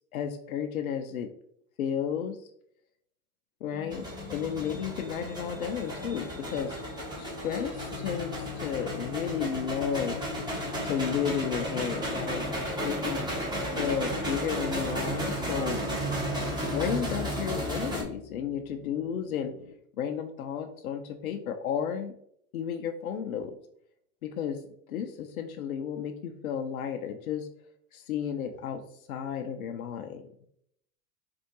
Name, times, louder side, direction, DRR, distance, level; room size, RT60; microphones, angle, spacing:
voice 1, 0.1-1.3 1.8-2.5 3.6-12.5 12.8-13.2 13.8-15.8 16.6-19.5 20.0-22.1 22.5-23.6 24.2-24.6 24.9-27.5 27.9-28.8 29.1-30.2, left 8 dB, 85° left, 5 dB, 0.5 m, -33 dB
sound 1, 3.7-19.7, left 8 dB, 40° left, 0.6 m, -43 dB
sound 2, 3.9-18.0, right 1 dB, 10° right, 1.1 m, -34 dB
4.4 x 2.5 x 2.8 m, 0.69 s
hypercardioid pair, 100°, 41 cm